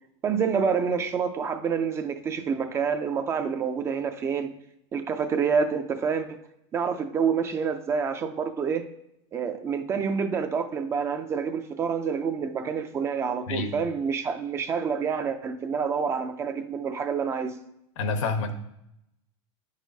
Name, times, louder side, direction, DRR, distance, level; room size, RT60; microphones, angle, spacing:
voice 1, 0.2-4.5 4.9-6.4 6.7-8.9 9.3-17.5, right 6 dB, 15° right, 8 dB, 0.3 m, -27 dB
voice 2, 18.0-18.5, left 3 dB, 85° left, 7 dB, 1.0 m, -27 dB
9.3 x 6.3 x 2.7 m, 0.81 s
supercardioid pair, 160°, 16 cm